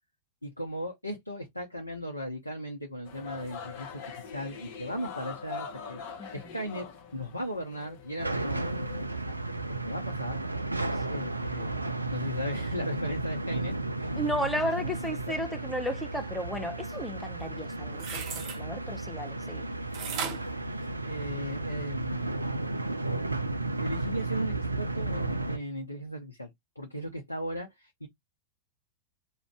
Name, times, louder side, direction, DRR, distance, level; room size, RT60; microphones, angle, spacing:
voice 1, 0.4-6.0 6.3-6.9 7.1-8.7 9.2-9.3 9.7-10.4 11.1-14.1 15.3-15.5 21.0-22.7 23.8-26.5 26.8-28.1, equal, 85° left, 0.5 m, -37 dB
sound 1, 3.1-9.0, left 6 dB, 50° left, 0.8 m, -43 dB
sound 2, 8.2-25.6, right 2 dB, 85° right, 0.3 m, -33 dB
voice 2, 14.2-19.6, equal, 5° left, 0.6 m, -34 dB
sound 3, 17.9-18.6 19.9-21.5 22.0-22.1, right 6 dB, 40° right, 0.7 m, -37 dB
2.5 x 2.1 x 3.3 m
figure-of-eight pair, 90°, 0 cm